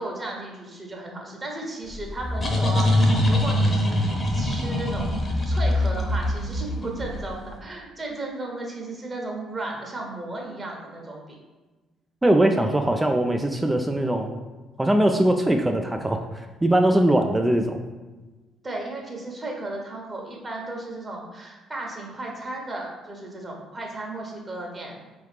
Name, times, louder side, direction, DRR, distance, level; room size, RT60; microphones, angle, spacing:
voice 1, 0.0-11.4 18.6-25.1, right 2 dB, 30° right, 0 dB, 1.2 m, -35 dB
sound 1, 1.9-7.4, left 1 dB, 30° left, 0.9 m, -23 dB
voice 2, 12.2-14.4 14.8-16.2 16.6-17.8, right 1 dB, 15° right, 4 dB, 0.4 m, -21 dB
4.5 x 3.0 x 3.4 m, 1.2 s
figure-of-eight pair, 45°, 0 cm